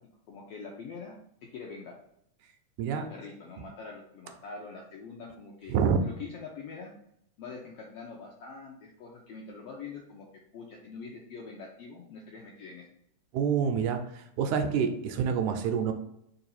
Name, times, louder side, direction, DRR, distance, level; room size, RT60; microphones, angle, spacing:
voice 1, 0.3-2.0 2.9-6.9 7.4-10.3 10.5-12.9, left 4 dB, 80° left, -1 dB, 1.4 m, -44 dB
voice 2, 2.8-3.1 5.7-6.0 13.3-15.9, right 7 dB, 80° right, 6 dB, 2.0 m, -27 dB
4.7 x 2.6 x 4.2 m, 0.74 s
omnidirectional pair, 3.5 m